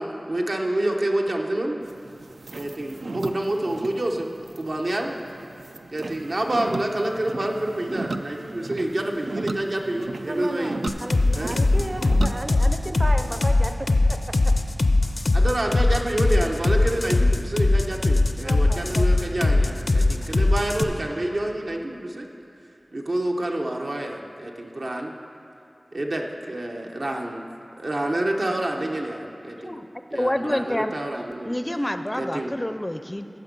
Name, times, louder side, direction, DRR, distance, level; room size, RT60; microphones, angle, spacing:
voice 1, 0.0-1.8 2.5-4.3 4.5-5.2 5.9-10.8 11.4-11.6 15.3-22.3 22.9-25.1 25.9-27.5 27.8-29.8 30.1-31.5 32.1-32.5, right 1 dB, 75° right, 0 dB, 1.0 m, -28 dB
sound 1, 1.8-12.4, right 2 dB, 90° right, 0.3 m, -35 dB
voice 2, 10.3-14.5 18.4-19.1, right 1 dB, 40° right, 7 dB, 0.7 m, -34 dB
sound 2, 10.9-20.8, left 2 dB, 70° left, 0.5 m, -20 dB
voice 3, 30.1-30.9 31.4-33.3, left 1 dB, 20° left, 9 dB, 0.4 m, -27 dB
15.0 x 6.1 x 5.3 m, 2.7 s
wide cardioid pair, 60°, 0 cm